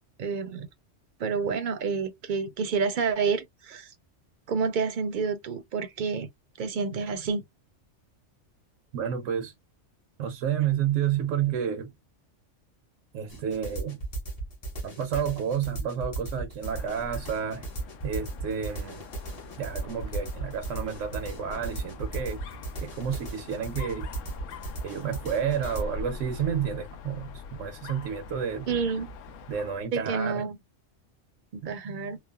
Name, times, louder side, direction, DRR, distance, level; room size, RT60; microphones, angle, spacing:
voice 1, 0.2-0.7 1.2-3.9 4.5-6.3 6.6-7.4 28.7-29.1 29.9-30.6 31.5-32.2, right 5 dB, 55° right, 0.6 m, -29 dB
voice 2, 8.9-9.5 10.2-11.9 13.1-14.0 14.8-17.7 18.0-19.0 19.6-22.4 22.8-24.1 24.8-28.8 29.5-30.5, right 8 dB, 85° right, 1.0 m, -30 dB
sound 1, 13.3-25.8, right 3 dB, 35° left, 0.8 m, -36 dB
Dog, 16.6-29.9, left 3 dB, 90° left, 1.0 m, -43 dB
3.1 x 2.1 x 2.2 m
omnidirectional pair, 1.3 m